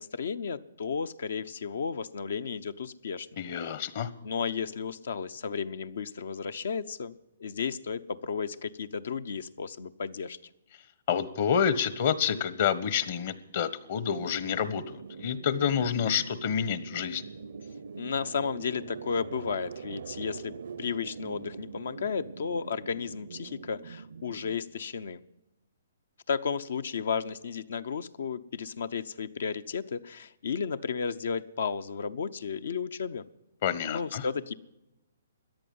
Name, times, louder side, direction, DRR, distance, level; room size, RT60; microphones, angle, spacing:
voice 1, 0.0-3.3 4.2-7.1 7.4-10.4 18.0-25.2 26.3-33.3 33.9-34.5, left 6 dB, 70° left, 13 dB, 0.8 m, -33 dB
voice 2, 3.4-4.1 11.1-17.2 33.6-34.3, left 8 dB, 50° left, 15 dB, 1.2 m, -28 dB
sound 1, 14.1-24.6, right 6 dB, 70° right, 0.6 m, -43 dB
14.0 x 10.0 x 9.4 m, 0.93 s
hypercardioid pair, 150°, 0 cm